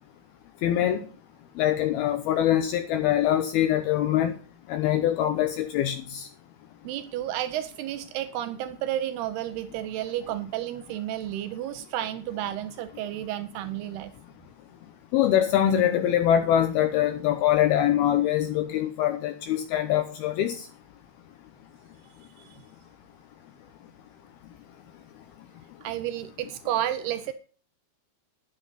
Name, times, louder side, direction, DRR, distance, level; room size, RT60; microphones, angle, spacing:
voice 1, 0.6-1.1 1.6-4.3 4.7-6.3 15.1-20.6, left 11 dB, 90° left, 7 dB, 2.1 m, -23 dB
voice 2, 6.8-14.1 22.4-22.5 25.8-27.3, right 12 dB, 90° right, 11 dB, 2.3 m, -31 dB
11.0 x 10.5 x 5.6 m, 0.39 s
omnidirectional pair, 5.6 m